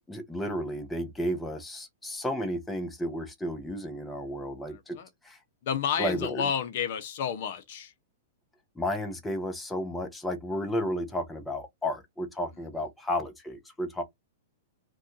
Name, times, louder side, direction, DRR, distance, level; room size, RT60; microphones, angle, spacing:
voice 1, 0.1-5.0 5.3-5.4 6.0-6.4 8.8-14.0, equal, 5° left, 0.6 m, -32 dB
voice 2, 4.7-5.1 5.7-7.9, left 7 dB, 55° left, 0.5 m, -31 dB
2.4 x 2.2 x 3.8 m
hypercardioid pair, 150°, 0 cm